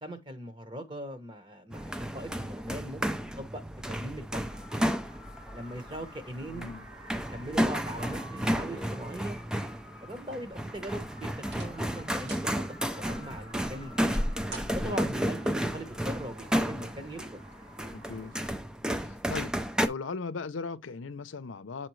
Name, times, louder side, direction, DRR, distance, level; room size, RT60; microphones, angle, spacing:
voice 1, 0.0-1.9 2.1-3.6 3.9-4.7 5.5-6.6 7.3-9.4 10.0-14.2 14.7-17.4, right 1 dB, 25° right, 1.1 m, -41 dB
sound 1, 1.7-19.9, equal, 5° right, 0.4 m, -33 dB
sound 2, 4.4-18.5, equal, 90° right, 2.0 m, -52 dB
voice 2, 6.5-6.9 14.8-15.1 17.9-18.5 18.9-19.5 19.8-21.9, left 4 dB, 80° left, 0.6 m, -38 dB
sound 3, 11.5-11.9 12.2-12.5 13.1-15.3 16.5-17.1 17.5-17.6 18.3-18.6 18.9-19.0, equal, 65° right, 1.9 m, -38 dB
7.8 x 4.3 x 3.1 m
head